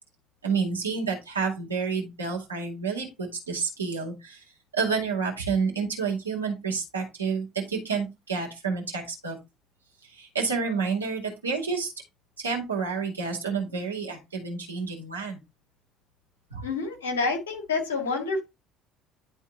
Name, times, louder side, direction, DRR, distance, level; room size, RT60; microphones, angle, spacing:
voice 1, 0.4-4.4 4.7-9.4 10.0-11.9 12.4-15.4 16.5-16.6, right 5 dB, 85° right, 2.1 m, -29 dB
voice 2, 16.6-18.4, left 4 dB, 80° left, 1.9 m, -28 dB
11.0 x 3.7 x 3.7 m
figure-of-eight pair, 55°, 0 cm